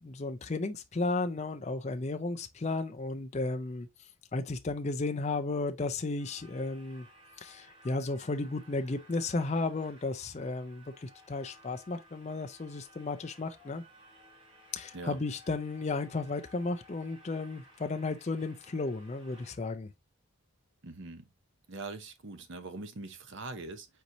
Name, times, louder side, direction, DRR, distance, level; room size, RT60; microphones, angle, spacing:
voice 1, 0.0-3.9 4.3-7.1 7.4-13.8 14.7-19.9, left 3 dB, 30° left, 0.5 m, -34 dB
sound 1, 6.2-19.6, equal, 25° right, 2.1 m, -58 dB
voice 2, 20.8-21.3 21.7-23.9, right 3 dB, 55° right, 0.8 m, -42 dB
4.6 x 4.1 x 2.7 m
head